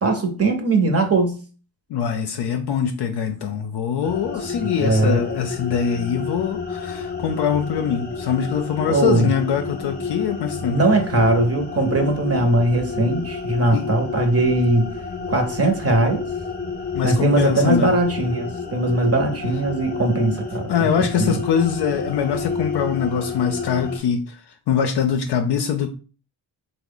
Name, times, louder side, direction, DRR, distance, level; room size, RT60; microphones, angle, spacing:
voice 1, 0.0-1.4 4.8-5.2 8.9-9.3 10.6-14.9 15.3-16.2 17.0-21.4, right 2 dB, 35° right, 0.7 m, -20 dB
voice 2, 1.9-11.0 13.0-13.2 13.7-13.9 16.9-17.9 20.7-24.4 24.7-25.9, left 7 dB, 60° left, 0.5 m, -23 dB
sound 1, 4.0-24.0, left 5 dB, 20° left, 0.8 m, -30 dB
2.9 x 2.1 x 3.7 m
cardioid pair, 65°, 45 cm